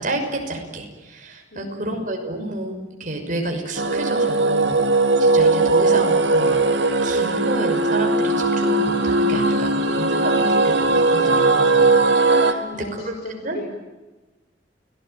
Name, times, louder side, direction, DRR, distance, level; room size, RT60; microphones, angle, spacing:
voice 1, 0.0-6.7 7.0-11.9 12.1-13.1 13.4-13.6, right 1 dB, 45° right, 3 dB, 6.1 m, -30 dB
voice 2, 1.5-2.0 12.5-13.6, left 2 dB, 60° left, 0 dB, 4.9 m, -36 dB
sound 1, 3.8-12.5, right 2 dB, 70° right, 2.1 m, -18 dB
29.5 x 19.5 x 9.2 m, 1.1 s
head